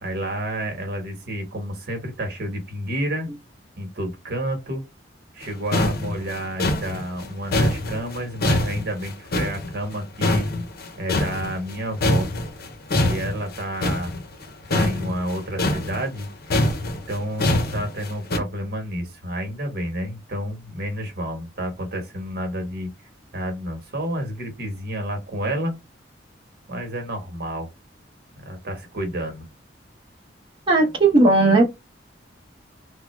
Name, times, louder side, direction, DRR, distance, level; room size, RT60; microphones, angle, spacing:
voice 1, 0.0-3.3 3.8-4.8 5.3-10.5 11.0-12.3 13.0-14.2 14.7-16.3 16.9-22.9 23.3-25.7 26.7-27.7 28.4-29.5, equal, 60° right, 1.2 m, -30 dB
sound 1, 5.4-5.5 5.7-10.0 10.2-11.8 12.0-18.4, left 1 dB, 55° left, 0.7 m, -24 dB
voice 2, 30.7-31.7, right 2 dB, 30° right, 0.8 m, -16 dB
3.6 x 2.2 x 3.0 m
head